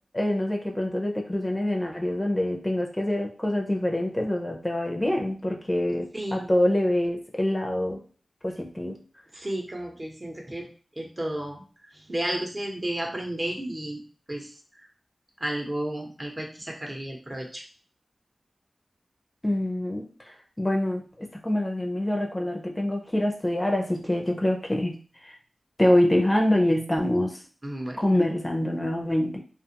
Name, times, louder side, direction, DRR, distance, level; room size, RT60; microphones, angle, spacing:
voice 1, 0.1-8.0 8.4-9.0 19.4-20.1 20.6-25.3 25.8-27.4 28.0-29.4, left 1 dB, 20° left, 1 dB, 0.5 m, -25 dB
voice 2, 6.1-6.5 9.3-10.7 11.0-11.6 11.9-14.0 14.3-14.5 14.8-14.9 15.4-17.6 27.6-28.2, right 1 dB, 35° right, 1 dB, 0.8 m, -32 dB
2.4 x 2.3 x 2.8 m, 0.40 s
cardioid pair, 50°, 0 cm